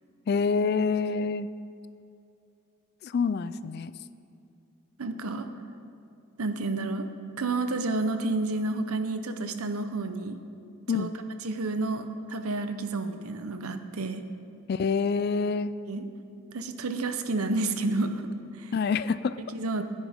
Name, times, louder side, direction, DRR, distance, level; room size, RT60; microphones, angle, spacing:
voice 1, 0.3-1.5 3.0-3.9 10.9-11.1 14.7-15.7 18.7-19.4, left 5 dB, 45° left, 15 dB, 0.3 m, -26 dB
voice 2, 5.0-5.5 6.4-7.1 7.4-10.4 10.9-11.1 11.4-14.2 15.9-16.0 16.5-18.3 18.6-18.7 19.5-19.8, right 2 dB, 80° right, 8 dB, 0.8 m, -30 dB
17.0 x 9.8 x 3.6 m, 2.6 s
head